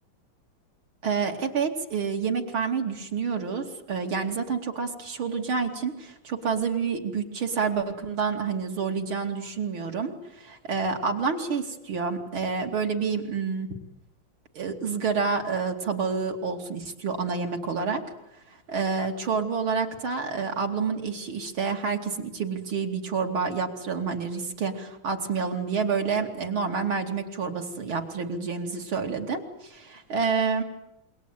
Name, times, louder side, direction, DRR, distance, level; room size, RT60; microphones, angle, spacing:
voice 1, 1.0-13.7 14.5-18.0 18.7-30.6, right 5 dB, 90° right, 2 dB, 3.6 m, -28 dB
28.0 x 22.5 x 9.3 m, 0.87 s
omnidirectional pair, 2.2 m